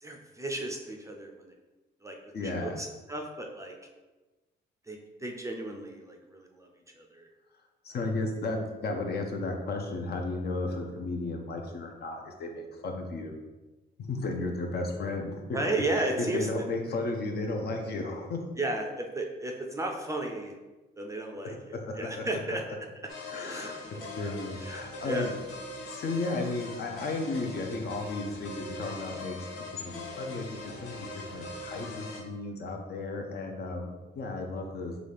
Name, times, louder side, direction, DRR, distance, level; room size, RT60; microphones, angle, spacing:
voice 1, 0.0-1.5 2.0-2.2 2.4-3.7 4.9-6.7 7.0-7.3 15.5-16.6 18.6-20.5 21.0-22.6 23.5-24.1 24.6-25.3 33.3-33.4, right 2 dB, 15° right, 1 dB, 0.4 m, -34 dB
voice 2, 2.3-2.8 7.8-13.3 14.0-15.6 15.9-18.4 21.4-22.2 23.3-23.8 24.2-25.3 25.9-29.5 29.7-35.0, left 2 dB, 55° left, 3 dB, 0.6 m, -34 dB
sound 1, 23.1-32.2, left 3 dB, 90° left, 0.7 m, -42 dB
3.9 x 2.4 x 3.3 m, 1.2 s
cardioid pair, 90°, 20 cm